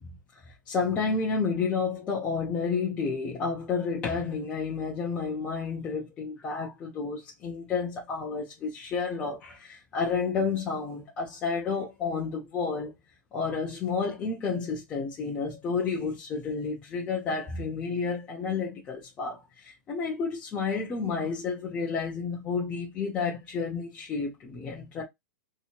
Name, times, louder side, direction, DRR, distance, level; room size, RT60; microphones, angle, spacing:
voice 1, 0.4-12.9 13.3-25.0, left 5 dB, 10° left, 0.4 m, -31 dB
3.2 x 2.8 x 2.8 m
hypercardioid pair, 175°, 11 cm